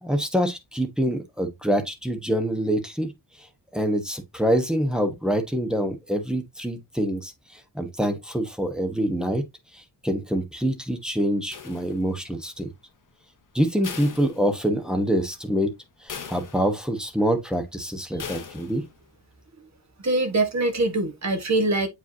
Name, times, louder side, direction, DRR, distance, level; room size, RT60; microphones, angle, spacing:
voice 1, 0.0-3.1 3.7-9.4 9.7-12.7 13.5-15.7 16.0-18.8, equal, ahead, 1.1 m, -25 dB
sound 1, 11.5-12.3 13.8-15.0 15.4-15.5 16.1-17.0 18.2-19.0, left 6 dB, 45° left, 1.1 m, -39 dB
voice 2, 20.0-21.9, right 2 dB, 40° right, 1.4 m, -23 dB
7.7 x 5.1 x 2.8 m
wide cardioid pair, 170°, 43 cm